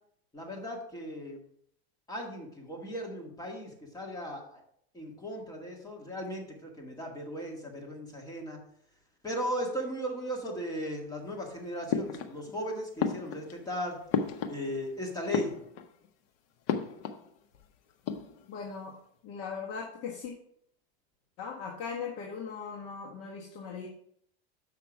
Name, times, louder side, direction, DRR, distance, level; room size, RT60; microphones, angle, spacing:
voice 1, 0.3-1.4 2.1-4.6 4.9-8.6 9.2-14.0 14.5-15.5, equal, 10° left, -1 dB, 2.0 m, -37 dB
sound 1, 11.9-12.6 13.0-14.9 15.2-16.1 16.7-17.3 17.5-17.6 17.9-18.6, left 7 dB, 65° left, 0.9 m, -33 dB
voice 2, 18.5-18.9 19.2-20.3 21.4-23.9, left 6 dB, 45° left, -2 dB, 1.4 m, -39 dB
7.1 x 5.9 x 4.6 m, 0.67 s
supercardioid pair, 140°, 31 cm